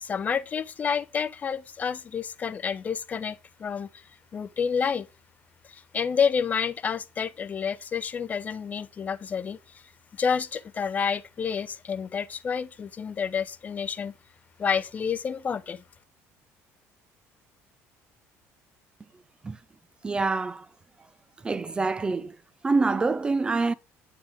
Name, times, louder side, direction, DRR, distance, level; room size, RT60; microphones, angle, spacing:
voice 1, 0.0-3.9 4.3-5.1 5.7-9.6 10.2-14.1 14.6-15.8, left 6 dB, 30° left, 0.7 m, -29 dB
voice 2, 20.0-20.7 21.4-22.4 22.6-23.7, right 3 dB, 15° right, 0.5 m, -26 dB
9.4 x 8.9 x 3.6 m
cardioid pair, 145°, 5 cm